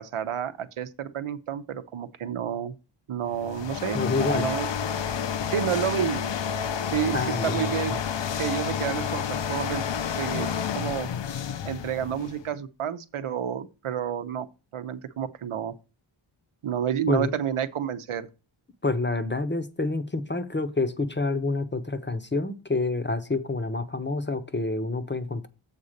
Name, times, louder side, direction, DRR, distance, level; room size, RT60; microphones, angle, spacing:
voice 1, 0.0-2.7 3.1-4.7 5.5-6.3 6.9-8.0 8.4-9.8 10.2-11.1 11.6-14.5 14.7-15.7 16.6-18.3, right 9 dB, 75° right, 0.8 m, -30 dB
sound 1, 3.3-12.5, left 7 dB, 60° left, 0.6 m, -30 dB
voice 2, 3.9-4.5 7.1-8.0 17.1-17.3 18.8-25.5, left 3 dB, 20° left, 0.7 m, -28 dB
7.5 x 4.1 x 6.5 m
wide cardioid pair, 130°, 50 cm